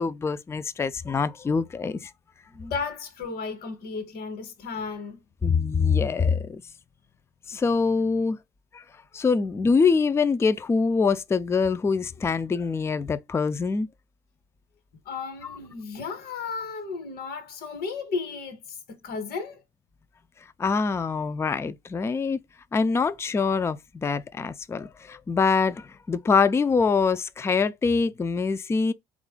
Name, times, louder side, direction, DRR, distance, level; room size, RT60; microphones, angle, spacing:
voice 1, 0.0-2.1 5.4-6.6 7.5-8.4 8.7-8.8 9.1-13.9 15.4-15.6 20.6-22.4 22.7-28.9, left 5 dB, 15° left, 0.3 m, -24 dB
voice 2, 2.5-5.2 15.0-19.6, left 5 dB, 65° left, 1.2 m, -34 dB
4.0 x 2.4 x 3.7 m
cardioid pair, 110°, 17 cm